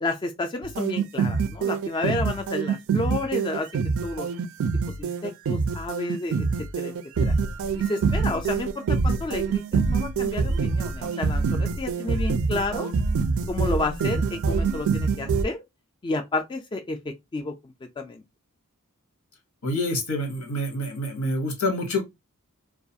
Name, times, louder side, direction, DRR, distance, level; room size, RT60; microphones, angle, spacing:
voice 1, 0.0-3.7 4.0-4.3 5.0-6.5 6.8-6.9 7.2-7.3 7.7-12.9 13.5-15.6 16.0-17.0 17.3-18.2, left 2 dB, 20° left, 0.3 m, -31 dB
sound 1, 0.6-15.4, right 5 dB, 65° right, 0.4 m, -25 dB
voice 2, 19.6-22.0, left 1 dB, 85° left, 1.0 m, -27 dB
2.3 x 2.3 x 2.6 m
head